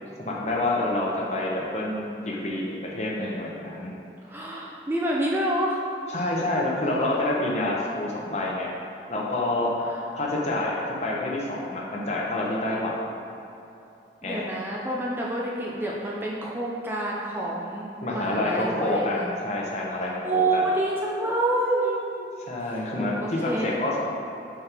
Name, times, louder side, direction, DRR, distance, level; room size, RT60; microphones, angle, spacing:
voice 1, 0.0-3.9 6.1-8.7 9.1-9.7 10.1-12.9 14.2-14.4 18.0-20.6 22.5-23.1 23.4-24.0, left 2 dB, 40° left, -3 dB, 0.9 m, -27 dB
voice 2, 4.2-5.8 9.8-10.0 14.2-19.3 20.0-22.3 23.2-23.7, right 1 dB, 10° right, -4 dB, 0.5 m, -28 dB
7.4 x 4.5 x 3.4 m, 2.8 s
head